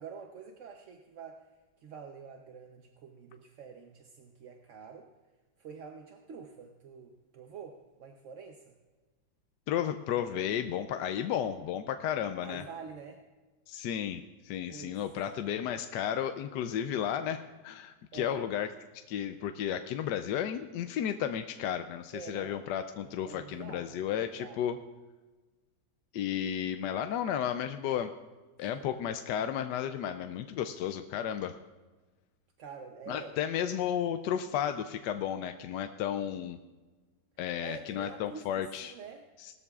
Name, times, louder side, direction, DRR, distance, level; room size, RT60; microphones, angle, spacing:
voice 1, 0.0-1.5 1.8-5.1 5.6-8.7 12.4-13.2 14.7-14.9 18.1-18.4 22.1-22.6 23.0-24.0 24.3-24.6 28.7-28.9 32.6-33.4 37.6-39.2, right 6 dB, 55° right, 3 dB, 0.9 m, -47 dB
voice 2, 9.7-12.7 13.7-18.7 19.1-24.8 26.1-28.1 28.6-31.5 33.1-36.6 37.4-38.9 39.4-39.5, left 9 dB, 75° left, 8 dB, 1.2 m, -33 dB
19.0 x 13.5 x 2.4 m, 1.3 s
omnidirectional pair, 1.9 m